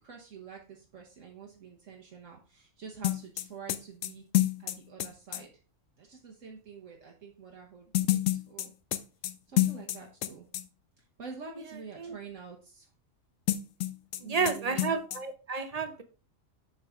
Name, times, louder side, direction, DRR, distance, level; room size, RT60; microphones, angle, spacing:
voice 1, 0.0-4.3 4.6-5.5 6.0-7.9 8.3-8.7 9.5-10.5 11.0-12.9 14.2-15.0, right 6 dB, 75° right, 0 dB, 1.4 m, -47 dB
sound 1, 3.0-5.4 7.9-10.3 10.5-10.6 13.5-14.2 14.5-14.6 14.8-15.2, left 14 dB, 80° left, 1.0 m, -28 dB
voice 2, 14.2-16.0, right 5 dB, 35° right, 8 dB, 0.7 m, -31 dB
7.2 x 5.6 x 3.6 m, 0.36 s
omnidirectional pair, 1.3 m